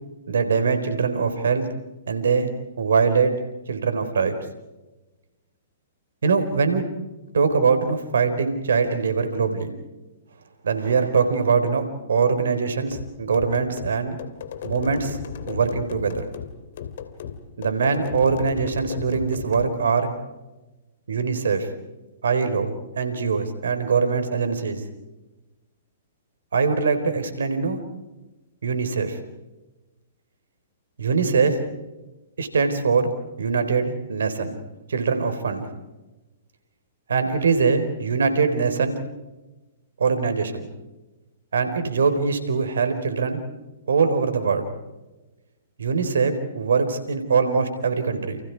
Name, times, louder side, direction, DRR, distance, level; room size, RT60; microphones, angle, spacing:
voice 1, 0.3-1.7 2.1-2.5 2.8-3.3 3.7-4.4 6.2-6.8 7.3-9.7 10.6-14.2 14.6-15.2 15.5-16.2 17.6-20.1 21.1-21.7 22.2-24.8 26.5-27.8 28.6-29.2 31.0-31.6 32.4-33.1 33.4-34.6 34.9-35.7 37.1-39.0 40.0-40.7 41.5-43.4 43.9-44.7 45.8-48.4, right 5 dB, 75° right, 10 dB, 4.4 m, -22 dB
sound 1, 12.9-19.7, left 7 dB, 60° left, 2.9 m, -36 dB
30.0 x 30.0 x 4.8 m, 1.1 s
hypercardioid pair, 120°, 0 cm